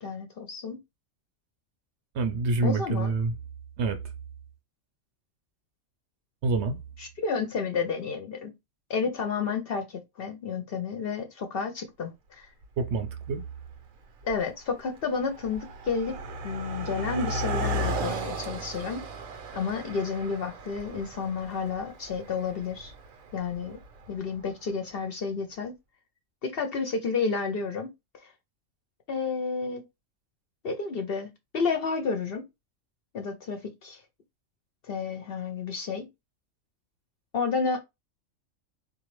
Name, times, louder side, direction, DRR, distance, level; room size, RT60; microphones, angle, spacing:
voice 1, 0.0-0.8 2.6-3.1 7.0-8.5 8.9-12.5 14.2-16.2 16.4-19.0 19.5-22.9 23.3-23.8 24.1-25.7 26.4-27.9 28.2-28.3 29.1-29.8 30.6-32.4 33.1-34.0 34.9-36.1 37.3-37.8, left 5 dB, 55° left, 0.7 m, -31 dB
voice 2, 2.1-3.3 3.8-4.0 6.4-6.8 12.8-13.4, right 3 dB, 65° right, 0.8 m, -26 dB
Car passing by, 12.6-12.7 13.5-13.8 14.0-24.4, equal, 90° right, 1.2 m, -35 dB
4.0 x 2.6 x 3.0 m
omnidirectional pair, 1.4 m